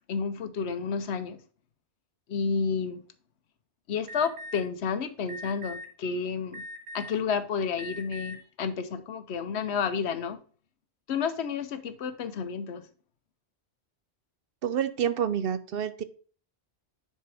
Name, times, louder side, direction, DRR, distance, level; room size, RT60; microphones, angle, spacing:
voice 1, 0.1-1.4 2.3-3.0 3.9-6.6 6.9-10.4 11.1-12.9, left 6 dB, 85° left, 1.0 m, -31 dB
Alarm, 4.1-4.6 5.3-5.8 6.5-7.2 7.7-8.3, left 1 dB, 85° right, 1.8 m, -40 dB
voice 2, 14.6-16.0, right 9 dB, 65° right, 0.8 m, -28 dB
10.0 x 4.3 x 3.4 m
omnidirectional pair, 1.1 m